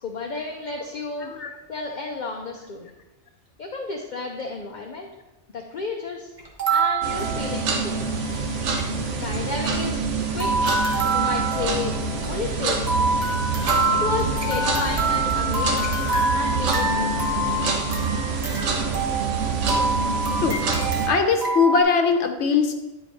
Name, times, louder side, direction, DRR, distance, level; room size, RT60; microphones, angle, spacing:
voice 1, 0.0-1.3 1.7-2.9 3.6-5.1 5.5-6.3 6.7-8.1 9.2-10.0 10.3-10.5 11.1-12.0 12.2-12.9 13.9-15.9 16.3-17.4, left 4 dB, 45° left, 2 dB, 0.8 m, -32 dB
voice 2, 1.2-1.5 20.4-20.6 21.1-22.7, left 5 dB, 70° left, 5 dB, 1.2 m, -21 dB
sound 1, 6.4-8.1 8.3-8.4 8.6-8.9 9.3-10.1 10.4-21.8, right 2 dB, 40° right, 1.3 m, -26 dB
sound 2, 7.0-21.1, right 4 dB, 85° right, 1.2 m, -26 dB
10.0 x 5.1 x 4.1 m, 1.0 s
omnidirectional pair, 1.2 m